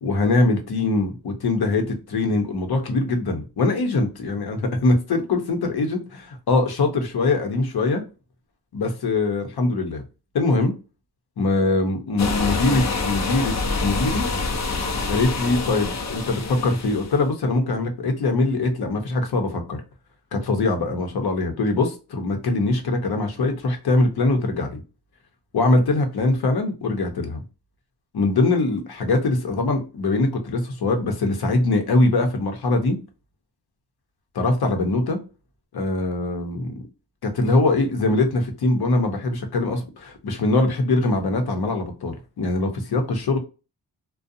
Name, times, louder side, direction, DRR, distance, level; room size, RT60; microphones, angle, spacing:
voice 1, 0.0-8.0 8.7-10.0 10.3-10.7 11.4-14.3 15.1-19.8 20.3-24.8 25.5-27.4 28.1-33.0 34.3-35.2 35.7-36.8 37.2-43.4, left 2 dB, 65° left, 0.8 m, -22 dB
sound 1, 12.2-17.2, left 3 dB, 45° left, 0.6 m, -26 dB
2.5 x 2.2 x 2.6 m
cardioid pair, 85°, 40 cm